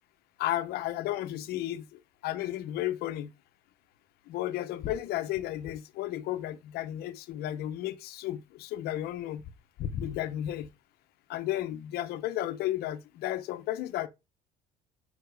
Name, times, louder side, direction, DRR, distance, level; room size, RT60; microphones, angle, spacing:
voice 1, 0.4-1.8 2.2-3.3 4.3-9.4 9.8-10.7 11.3-14.1, left 13 dB, 70° left, 0.9 m, -33 dB
6.7 x 5.1 x 4.8 m
supercardioid pair, 70°, 17 cm